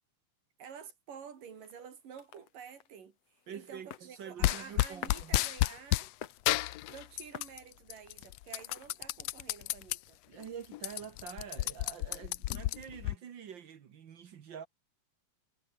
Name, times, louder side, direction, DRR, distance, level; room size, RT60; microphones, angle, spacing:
voice 1, 0.6-6.1 6.9-10.2, right 7 dB, 85° right, 4.9 m, -50 dB
sound 1, 1.1-9.2, left 10 dB, 60° left, 2.2 m, -53 dB
voice 2, 3.5-5.4 10.3-14.7, right 8 dB, 55° right, 1.3 m, -46 dB
sound 2, 4.4-6.1 6.5-7.6 7.9-10.0 10.4-10.5 10.7-13.2, left 17 dB, 85° left, 1.4 m, -31 dB
omnidirectional pair, 3.7 m